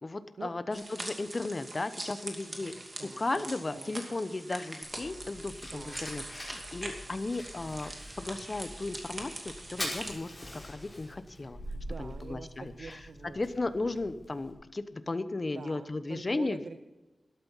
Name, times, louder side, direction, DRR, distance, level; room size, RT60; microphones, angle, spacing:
voice 1, 0.0-2.8 3.2-7.9 8.2-9.4 9.7-10.3 10.6-11.6 12.0-13.0 13.3-16.6, left 2 dB, 30° left, 12 dB, 0.9 m, -35 dB
sound 1, 0.7-10.1, right 1 dB, 30° right, 2.5 m, -43 dB
voice 2, 2.5-3.9 5.7-6.0 11.7-13.4 15.5-16.8, right 4 dB, 65° right, 10 dB, 0.6 m, -46 dB
Fire, 4.8-14.5, equal, 10° left, 5.8 m, -44 dB
13.0 x 12.0 x 5.6 m, 1.1 s
wide cardioid pair, 115°, 0 cm